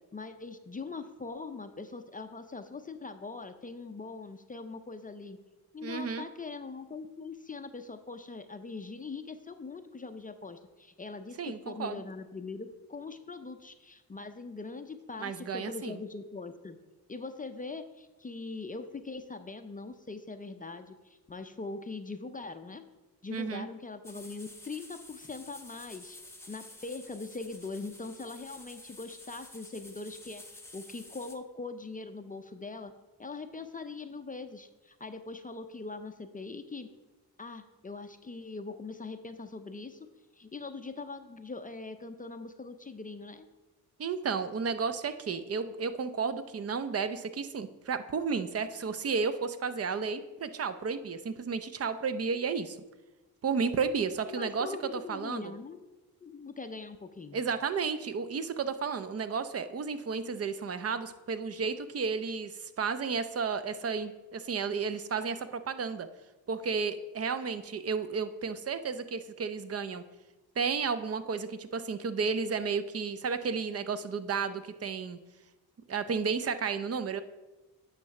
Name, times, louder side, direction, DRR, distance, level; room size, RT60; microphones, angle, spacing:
voice 1, 0.1-5.4 5.7-16.8 17.1-22.8 23.2-26.2 26.5-30.4 30.7-32.9 33.2-36.9 37.4-40.1 40.4-43.5 54.2-55.9 56.2-57.4, left 3 dB, 20° left, 8 dB, 0.5 m, -42 dB
voice 2, 5.8-6.2 11.4-12.0 15.2-16.0 23.3-23.7 44.0-52.8 53.4-54.7 55.1-55.4 57.3-66.1 66.5-70.0 70.6-75.2 75.9-77.2, right 5 dB, 40° right, 12 dB, 0.6 m, -32 dB
sound 1, 24.0-31.4, left 2 dB, 5° left, 0.9 m, -50 dB
9.0 x 3.2 x 5.8 m, 1.1 s
cardioid pair, 65°, 39 cm